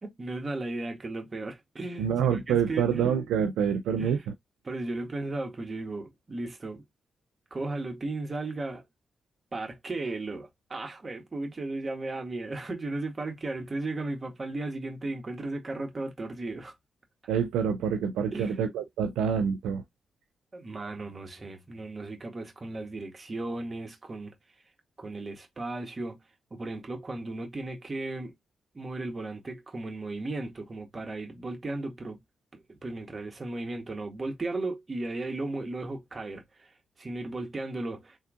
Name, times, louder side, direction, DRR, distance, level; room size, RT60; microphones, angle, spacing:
voice 1, 0.0-3.1 4.0-4.2 4.6-6.8 7.5-8.8 9.5-16.7 18.3-18.6 20.5-24.3 25.0-26.2 26.5-28.3 28.7-32.2 32.5-38.2, right 2 dB, 40° right, 1.9 m, -35 dB
voice 2, 2.0-4.3 17.3-19.8, right 7 dB, 80° right, 0.4 m, -27 dB
3.7 x 3.5 x 2.3 m
hypercardioid pair, 40°, 0 cm